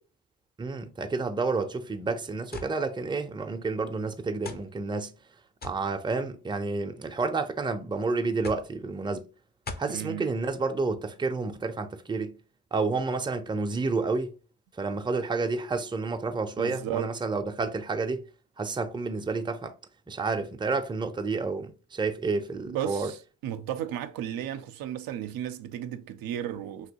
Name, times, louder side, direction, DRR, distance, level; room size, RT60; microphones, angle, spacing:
voice 1, 0.6-5.1 5.6-9.3 9.8-12.4 12.7-14.3 14.8-18.2 18.6-19.7 20.1-23.1, right 3 dB, 15° right, 0.5 m, -30 dB
sound 1, 2.5-2.8 3.6-3.7 4.4-4.7 5.6-5.9 6.8-7.3 8.4-8.7 9.7-10.0, left 3 dB, 25° left, 0.6 m, -40 dB
voice 2, 9.9-10.3 16.6-17.1 22.7-26.9, right 10 dB, 70° right, 0.5 m, -34 dB
3.0 x 2.9 x 2.8 m
supercardioid pair, 65°, 37 cm